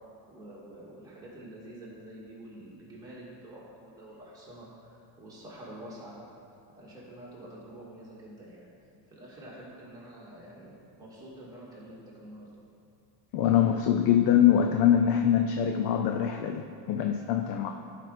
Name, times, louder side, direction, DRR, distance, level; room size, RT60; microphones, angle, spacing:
voice 1, 0.3-6.2 6.8-8.7 9.1-12.5, right 1 dB, 10° right, -7 dB, 2.1 m, -47 dB
voice 2, 13.3-17.7, left 9 dB, 50° left, 5 dB, 0.5 m, -24 dB
11.5 x 5.1 x 4.1 m, 2.4 s
cardioid pair, 150°, 48 cm